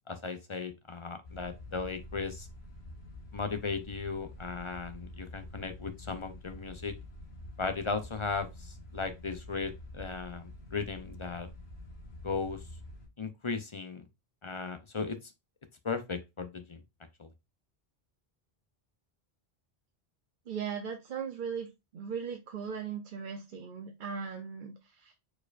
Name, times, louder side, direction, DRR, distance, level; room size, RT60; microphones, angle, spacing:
voice 1, 0.1-2.5 3.3-6.9 7.6-11.5 12.2-12.6 13.2-14.1 14.4-15.3 15.8-16.8 17.2-17.3, left 4 dB, 35° left, 0.6 m, -36 dB
sound 1, 1.2-13.1, left 1 dB, 85° left, 1.6 m, -47 dB
voice 2, 20.5-21.7 21.9-25.1, right 6 dB, 55° right, 0.8 m, -38 dB
4.6 x 4.3 x 2.5 m
omnidirectional pair, 1.0 m